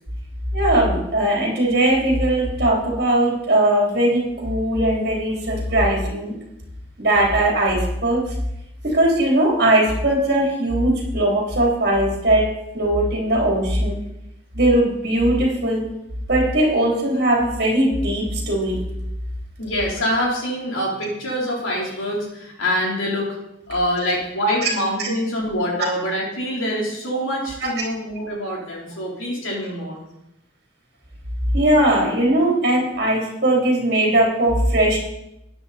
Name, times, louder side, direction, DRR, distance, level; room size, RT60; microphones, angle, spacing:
voice 1, 0.5-6.3 7.0-8.2 8.8-12.5 12.7-14.0 14.5-15.8 16.3-18.8 24.6-24.7 27.6-27.7 31.5-35.0, right 1 dB, 50° right, -1 dB, 3.4 m, -19 dB
voice 2, 19.6-23.3 23.7-30.0, equal, 90° left, -2 dB, 3.9 m, -25 dB
12.5 x 9.8 x 4.3 m, 0.83 s
head